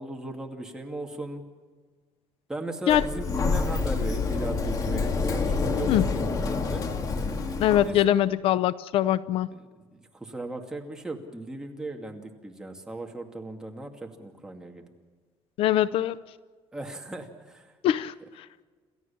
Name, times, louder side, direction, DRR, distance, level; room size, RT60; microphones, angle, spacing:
voice 1, 0.0-1.4 2.5-6.8 7.8-8.0 9.5-14.9 16.7-17.7, right 2 dB, 5° right, 2 dB, 2.4 m, -37 dB
Sliding door, 2.9-7.9, left 4 dB, 35° left, 2.3 m, -27 dB
voice 2, 7.6-9.5 15.6-16.2 17.8-18.5, left 11 dB, 70° left, 17 dB, 0.6 m, -23 dB
28.5 x 14.0 x 7.1 m, 1.5 s
cardioid pair, 150°, 10 cm